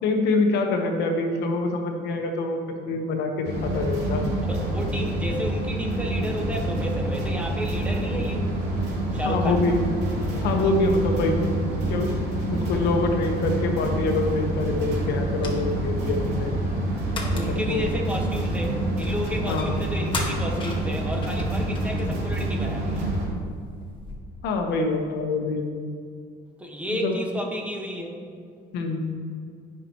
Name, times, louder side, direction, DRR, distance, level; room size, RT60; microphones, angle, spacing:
voice 1, 0.0-4.2 9.2-9.8 10.4-11.4 11.9-12.1 12.5-16.5 17.3-17.9 19.5-19.7 24.4-25.7 26.9-27.2 28.7-29.1, left 3 dB, 80° left, 3 dB, 1.2 m, -25 dB
sound 1, 3.4-23.3, right 1 dB, 85° right, 2.6 m, -27 dB
voice 2, 4.5-8.5 9.1-9.6 16.3-16.7 17.2-23.1 26.6-28.2, equal, 10° right, 0 dB, 1.5 m, -32 dB
sound 2, 10.8-24.2, left 3 dB, 30° left, 1.7 m, -41 dB
16.5 x 5.9 x 3.1 m, 2.1 s
cardioid pair, 110°, 17 cm